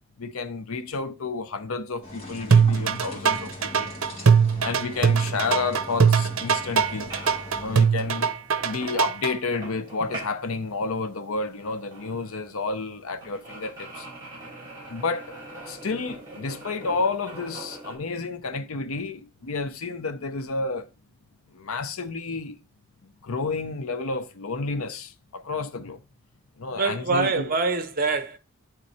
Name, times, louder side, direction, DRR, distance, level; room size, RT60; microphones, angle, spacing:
voice 1, 0.2-3.9 4.6-7.1 7.6-8.3 8.6-14.1 14.9-15.3 15.7-20.9 21.6-22.6 23.2-26.0 26.6-27.5, left 4 dB, 75° left, 0.7 m, -30 dB
sound 1, 2.0-7.8, left 1 dB, 25° left, 2.5 m, -40 dB
sound 2, 2.5-9.3, right 6 dB, 70° right, 0.7 m, -20 dB
sound 3, 6.9-17.9, right 2 dB, 20° right, 4.3 m, -43 dB
voice 2, 26.7-28.4, right 3 dB, 40° right, 0.9 m, -25 dB
10.5 x 3.9 x 4.2 m
head